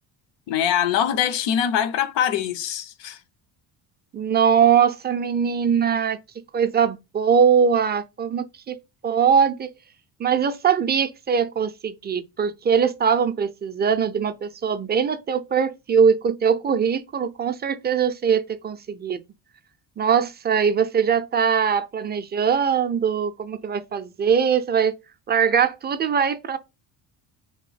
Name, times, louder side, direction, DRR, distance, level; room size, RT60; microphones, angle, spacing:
voice 1, 0.5-3.2, left 9 dB, 70° left, 0.7 m, -23 dB
voice 2, 4.1-6.2 6.5-8.8 9.0-9.7 10.2-19.2 20.0-25.0 25.3-26.6, right 7 dB, 25° right, 0.3 m, -21 dB
2.9 x 2.6 x 3.9 m
cardioid pair, 90°, 46 cm